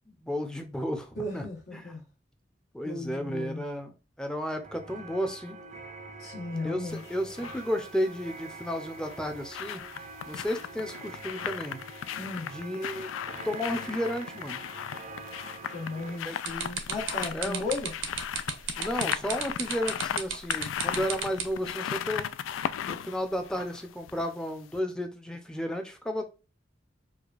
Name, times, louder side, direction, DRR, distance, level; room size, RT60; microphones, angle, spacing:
voice 1, 0.1-1.5 1.7-1.9 2.7-5.6 6.6-9.8 10.3-11.8 12.4-13.1 13.4-14.6 16.3-16.4 17.3-17.7 18.8-22.3 22.9-26.2, equal, 5° left, 0.6 m, -33 dB
voice 2, 1.2-2.0 2.8-3.6 6.2-7.0 12.2-12.5 15.7-17.9, left 2 dB, 65° left, 1.4 m, -35 dB
sound 1, 4.6-16.2, right 3 dB, 40° right, 0.5 m, -45 dB
sound 2, 6.9-7.6 8.9-24.4 24.7-24.8, left 9 dB, 85° left, 0.3 m, -36 dB
sound 3, 16.5-21.7, right 6 dB, 80° right, 0.8 m, -33 dB
4.8 x 2.3 x 2.4 m
head